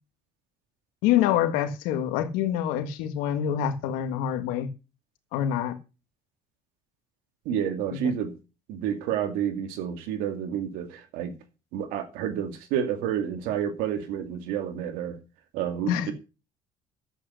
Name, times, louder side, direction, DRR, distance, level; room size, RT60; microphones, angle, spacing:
voice 1, 1.0-4.7 5.3-5.8 7.9-8.0 15.9-16.1, left 10 dB, 90° left, 1.6 m, -26 dB
voice 2, 7.5-8.3 8.7-11.3 11.7-15.2 15.5-16.1, right 9 dB, 85° right, 2.5 m, -29 dB
11.0 x 8.3 x 6.4 m
cardioid pair, 95°, 14 cm